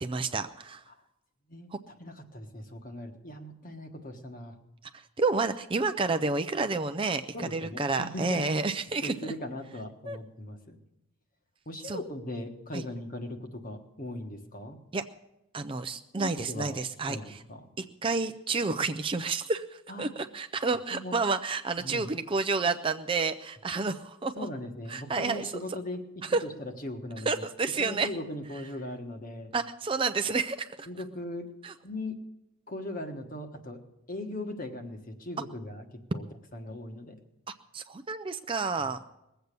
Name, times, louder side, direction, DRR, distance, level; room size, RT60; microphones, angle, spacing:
voice 1, 0.0-0.8 4.9-9.1 10.1-10.2 11.8-12.0 12.7-12.8 14.9-15.0 15.5-17.4 17.8-24.3 24.9-25.5 26.3-26.4 27.3-28.1 29.5-30.9 31.6-31.7 37.7-39.0, right 4 dB, 25° right, 9 dB, 0.4 m, -30 dB
voice 2, 1.5-4.6 7.3-8.5 9.0-10.8 11.7-14.8 16.1-16.8 17.1-17.7 19.9-20.1 20.9-21.1 21.8-22.1 24.4-26.0 26.4-27.5 27.8-29.5 30.9-31.5 31.8-32.2 32.7-33.8 34.1-37.2 38.8-39.1, left 1 dB, 40° left, 5 dB, 1.4 m, -39 dB
20.5 x 8.0 x 6.8 m, 0.89 s
head